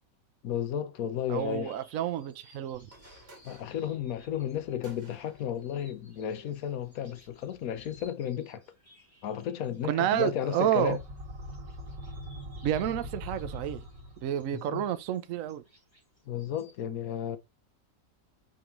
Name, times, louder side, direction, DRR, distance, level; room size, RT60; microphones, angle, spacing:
voice 1, 0.4-1.7 3.4-8.6 9.2-11.0 14.5-14.8 16.3-17.4, left 9 dB, 60° left, 1.2 m, -33 dB
sound 1, 1.1-16.8, left 1 dB, 15° left, 2.9 m, -62 dB
voice 2, 1.3-2.9 9.9-11.0 12.6-13.8 14.2-15.6, right 11 dB, 65° right, 0.8 m, -29 dB
sound 2, 2.7-8.1, right 1 dB, 35° right, 2.9 m, -58 dB
sound 3, 10.9-14.5, equal, 80° right, 2.0 m, -42 dB
6.0 x 5.1 x 3.1 m
omnidirectional pair, 1.9 m